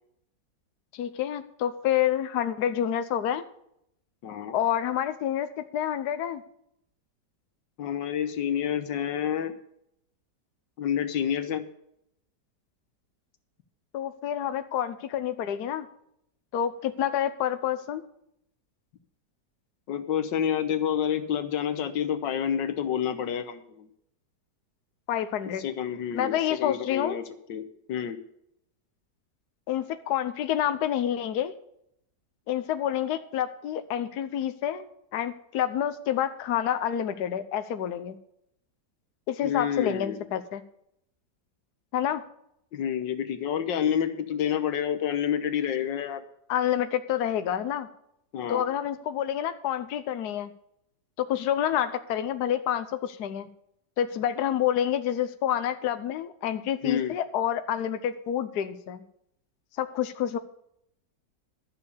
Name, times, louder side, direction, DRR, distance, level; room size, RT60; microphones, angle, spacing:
voice 1, 0.9-3.4 4.5-6.4 13.9-15.9 16.5-18.0 25.1-25.6 26.1-27.2 29.7-31.5 32.5-38.2 39.3-40.6 41.9-42.2 46.5-47.9 48.5-50.5 51.2-53.5 54.0-59.0 59.8-60.4, left 10 dB, 65° left, 10 dB, 1.3 m, -28 dB
voice 2, 4.2-4.5 7.8-9.5 10.8-11.6 19.9-23.9 25.6-27.2 27.5-28.2 39.4-40.2 42.7-46.2 48.3-48.7 56.8-57.1, left 9 dB, 90° left, 10 dB, 1.7 m, -28 dB
12.5 x 7.0 x 6.8 m, 0.75 s
omnidirectional pair, 1.9 m